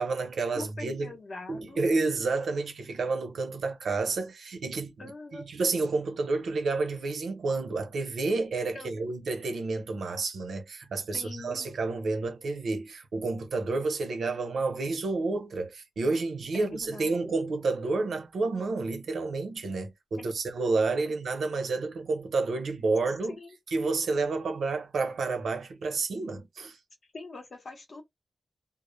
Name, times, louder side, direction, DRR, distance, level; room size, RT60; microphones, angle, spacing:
voice 1, 0.0-1.1 1.5-23.4 23.7-26.8, right 3 dB, 80° right, 0.7 m, -30 dB
voice 2, 0.5-1.8 5.0-5.4 8.7-8.9 11.1-11.7 16.5-17.3 20.2-20.3 23.3-23.6 27.1-28.0, left 3 dB, 45° left, 0.8 m, -43 dB
2.0 x 2.0 x 3.1 m
wide cardioid pair, 175°, 0 cm